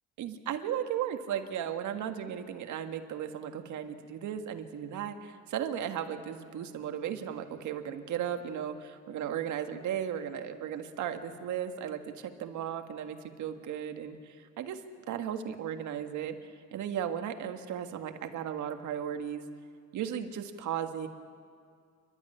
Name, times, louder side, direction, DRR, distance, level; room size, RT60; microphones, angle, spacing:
voice 1, 0.2-14.8 15.1-16.4 16.7-19.4 19.9-21.1, right 9 dB, 75° right, 6 dB, 1.8 m, -36 dB
28.0 x 12.5 x 9.9 m, 2.2 s
cardioid pair, 95°, 30 cm